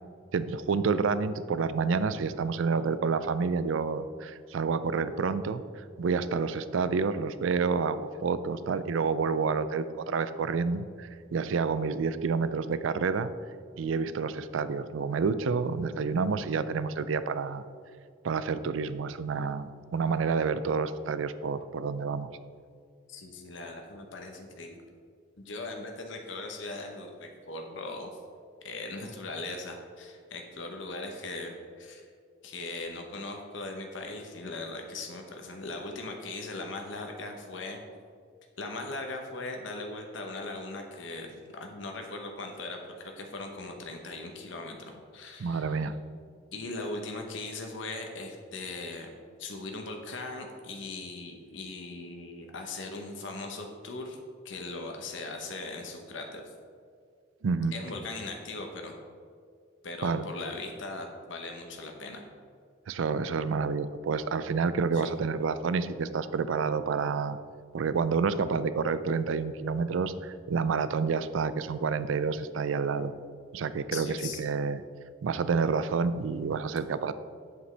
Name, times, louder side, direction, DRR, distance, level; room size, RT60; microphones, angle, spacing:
voice 1, 0.3-13.3 13.8-17.6 18.2-22.3 45.4-46.0 57.4-57.7 60.0-60.2 62.9-67.4 67.7-73.1 73.5-74.8 75.2-77.1, right 5 dB, 80° right, 14 dB, 0.4 m, -29 dB
voice 2, 23.1-24.8 25.4-28.2 28.6-32.1 32.4-37.8 38.6-45.9 46.5-54.2 54.4-56.5 57.7-58.9 59.8-62.2 65.0-65.1 73.9-74.4, left 2 dB, 70° left, 3 dB, 0.9 m, -39 dB
8.0 x 7.8 x 3.3 m, 2.2 s
head